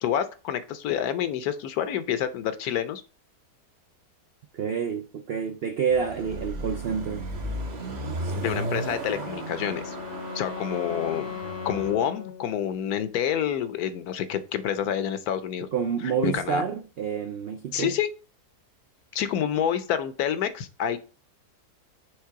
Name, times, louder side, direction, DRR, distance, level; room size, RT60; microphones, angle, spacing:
voice 1, 0.0-3.0 8.4-10.0 10.3-11.3 11.6-15.7 16.2-16.6 17.7-18.1 19.1-21.0, left 9 dB, 75° left, 1.1 m, -28 dB
voice 2, 4.5-7.3 15.7-17.9, right 6 dB, 85° right, 0.5 m, -28 dB
Car passing by / Accelerating revving vroom, 5.9-11.9, right 1 dB, 35° right, 0.7 m, -34 dB
Wind instrument woodwind instrument, 9.0-13.0, left 8 dB, 50° left, 0.7 m, -39 dB
6.5 x 3.4 x 4.6 m
omnidirectional pair, 1.7 m